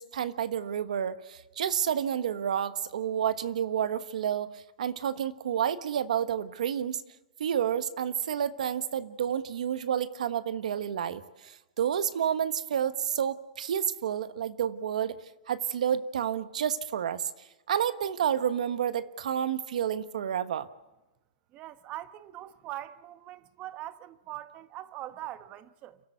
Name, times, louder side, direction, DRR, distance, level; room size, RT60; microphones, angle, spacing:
voice 1, 0.0-7.0 7.4-15.1 15.5-17.3 17.7-20.7, right 9 dB, 80° right, 1.3 m, -30 dB
voice 2, 21.5-26.0, right 14 dB, 30° right, 1.1 m, -42 dB
30.0 x 12.5 x 8.1 m
hypercardioid pair, 145°, 4 cm